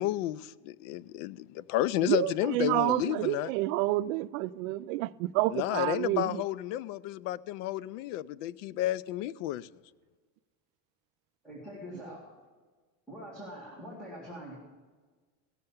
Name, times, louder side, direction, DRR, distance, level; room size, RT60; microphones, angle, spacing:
voice 1, 0.0-3.5 5.5-9.7, left 14 dB, 75° left, 0.5 m, -31 dB
voice 2, 2.0-6.4, right 17 dB, 90° right, 0.5 m, -29 dB
voice 3, 11.4-12.2 13.1-14.5, equal, ahead, 2.0 m, -44 dB
17.0 x 6.7 x 7.1 m
cardioid pair, 175°, 38 cm